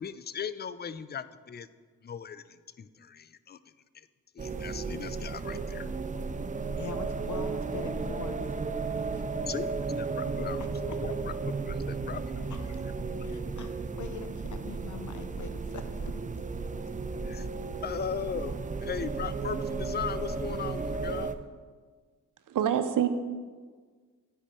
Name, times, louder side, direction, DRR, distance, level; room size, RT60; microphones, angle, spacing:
voice 1, 0.0-1.7 2.0-3.6 3.9-4.1 4.4-5.9 9.5-11.1 11.4-12.5 13.0-13.2 17.3-17.5 17.8-18.6 18.8-21.3, left 7 dB, 30° left, 15 dB, 0.4 m, -38 dB
sound 1, 4.4-21.3, right 4 dB, 20° right, 0.5 m, -34 dB
voice 2, 6.8-9.8 10.6-11.2 12.5-12.8 13.2-13.7 14.0-16.2, left 5 dB, 55° left, 8 dB, 0.9 m, -43 dB
voice 3, 22.5-23.1, right 9 dB, 60° right, 10 dB, 0.7 m, -26 dB
9.8 x 5.0 x 4.3 m, 1.5 s
supercardioid pair, 50°, 36 cm